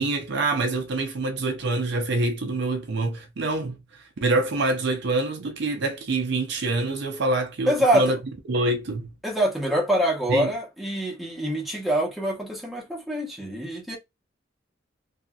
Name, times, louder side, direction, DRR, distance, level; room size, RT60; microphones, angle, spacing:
voice 1, 0.0-3.8 4.2-8.2 8.5-9.1 10.3-10.5, right 2 dB, 65° right, 0.5 m, -25 dB
voice 2, 7.7-8.1 9.2-14.0, equal, ahead, 0.9 m, -25 dB
2.7 x 2.6 x 2.3 m
head